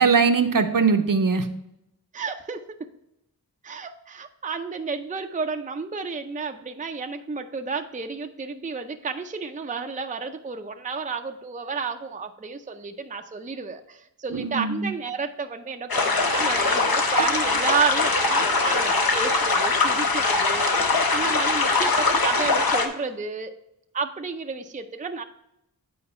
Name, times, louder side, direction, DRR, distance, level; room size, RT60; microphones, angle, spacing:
voice 1, 0.0-1.5 14.3-14.9, right 5 dB, 60° right, 7 dB, 0.7 m, -21 dB
voice 2, 2.1-2.9 3.6-20.7 21.1-23.5 23.9-25.2, right 5 dB, 20° right, 6 dB, 0.5 m, -31 dB
sound 1, 15.9-22.9, left 3 dB, 65° left, 1.0 m, -22 dB
8.7 x 4.7 x 4.2 m, 0.83 s
wide cardioid pair, 65°, 38 cm